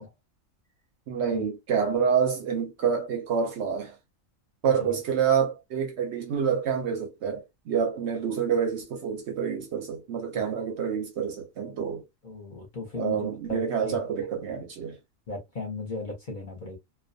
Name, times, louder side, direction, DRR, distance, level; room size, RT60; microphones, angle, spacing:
voice 1, 1.1-3.9 4.6-12.0 12.9-15.0, right 7 dB, 65° right, 0.7 m, -27 dB
voice 2, 12.2-13.2 13.5-13.6 15.3-16.8, left 3 dB, 45° left, 0.7 m, -36 dB
2.2 x 2.2 x 2.6 m
omnidirectional pair, 1.4 m